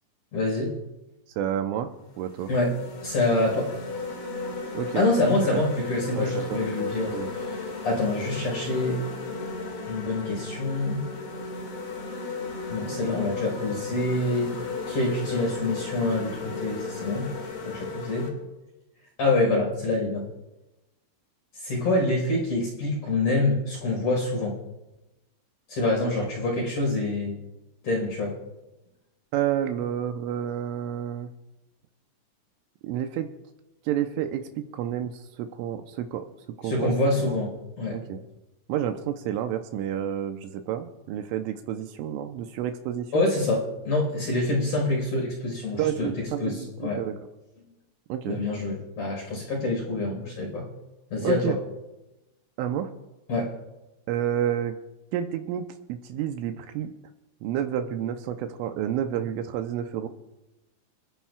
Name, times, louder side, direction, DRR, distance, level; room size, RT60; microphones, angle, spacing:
voice 1, 0.3-0.7 2.5-2.8 3.0-3.7 4.9-9.0 9.9-11.0 12.7-14.5 14.9-17.3 17.6-18.3 19.2-20.2 21.6-24.6 25.7-27.4 27.8-28.3 36.6-38.0 43.1-46.1 46.4-47.0 48.3-50.6 51.1-51.5 53.3-53.5, left 2 dB, 35° left, -1 dB, 5.3 m, -26 dB
sound 1, 1.4-1.5 2.1-18.3, left 3 dB, 60° left, 3.8 m, -35 dB
voice 2, 1.4-1.9 2.2-2.5 4.7-5.1 5.4-5.6 6.2-6.6 7.1-7.3 29.3-31.3 32.8-33.3 33.9-34.4 34.7-36.2 36.6-36.9 37.3-37.4 37.9-38.2 38.7-43.2 45.8-47.2 48.1-48.4 51.2-51.6 52.6-52.9 54.1-54.8 55.1-56.9 57.4-60.1, right 10 dB, 80° right, 6 dB, 3.1 m, -30 dB
29.5 x 10.0 x 2.4 m, 1.0 s
omnidirectional pair, 6.0 m